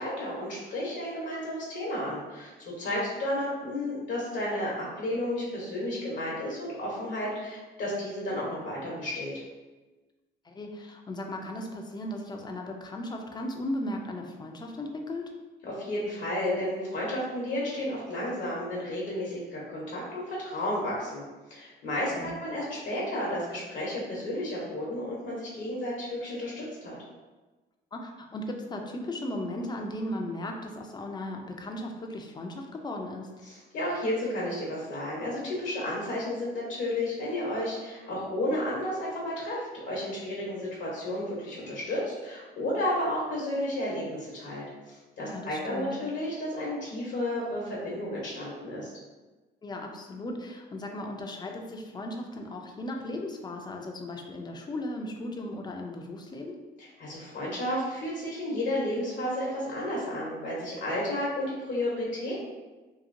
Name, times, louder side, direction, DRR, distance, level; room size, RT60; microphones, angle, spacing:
voice 1, 0.0-9.4 15.6-21.2 21.5-27.0 33.4-48.9 56.8-62.4, left 1 dB, 65° left, -5 dB, 0.9 m, -32 dB
voice 2, 10.4-15.3 22.1-22.4 27.9-33.3 45.2-45.9 49.6-56.6, left 1 dB, 20° left, 2 dB, 0.4 m, -36 dB
2.9 x 2.7 x 2.5 m, 1.2 s
cardioid pair, 90°, 20 cm